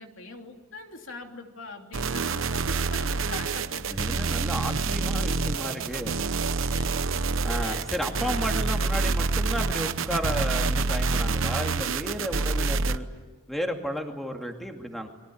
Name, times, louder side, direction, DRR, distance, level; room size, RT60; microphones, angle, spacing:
voice 1, 0.0-4.2 6.7-7.8, left 3 dB, 65° left, 3 dB, 3.0 m, -43 dB
sound 1, 1.9-13.0, right 4 dB, 65° right, 1.0 m, -27 dB
voice 2, 3.9-6.2 7.4-13.1 13.5-15.1, equal, ahead, 3 dB, 2.4 m, -33 dB
30.0 x 23.0 x 8.7 m, 1.2 s
head